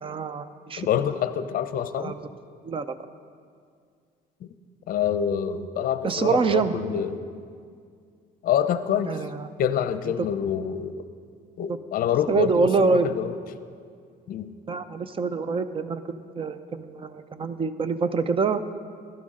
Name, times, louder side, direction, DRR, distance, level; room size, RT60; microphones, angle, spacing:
voice 1, 0.0-0.9 2.0-2.2 2.6-2.9 6.0-6.7 9.0-9.5 10.2-10.3 12.3-13.1 14.7-18.6, right 5 dB, 30° right, 12 dB, 0.6 m, -25 dB
voice 2, 0.8-2.1 4.4-4.5 4.9-7.2 8.4-9.1 9.6-11.0 11.6-13.4 14.3-14.5, left 9 dB, 60° left, 12 dB, 0.6 m, -26 dB
16.0 x 12.0 x 3.8 m, 2.1 s
cardioid pair, 110°, 17 cm